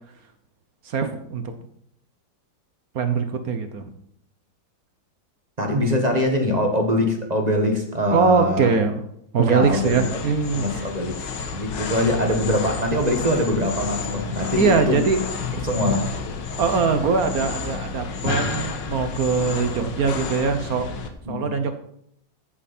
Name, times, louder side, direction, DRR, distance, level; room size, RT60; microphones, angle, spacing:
voice 1, 0.8-1.5 2.9-3.8 8.1-9.0 9.3-10.9 14.5-15.2 16.6-20.9 21.3-21.7, right 5 dB, 55° right, 8 dB, 1.2 m, -22 dB
voice 2, 5.6-8.7 9.5-10.0 10.5-11.1 11.5-15.0 15.6-16.1 21.3-21.5, left 1 dB, 25° right, 3 dB, 1.5 m, -23 dB
sound 1, 9.6-21.1, left 5 dB, 70° left, 1.8 m, -31 dB
14.0 x 7.5 x 4.4 m, 0.71 s
omnidirectional pair, 2.1 m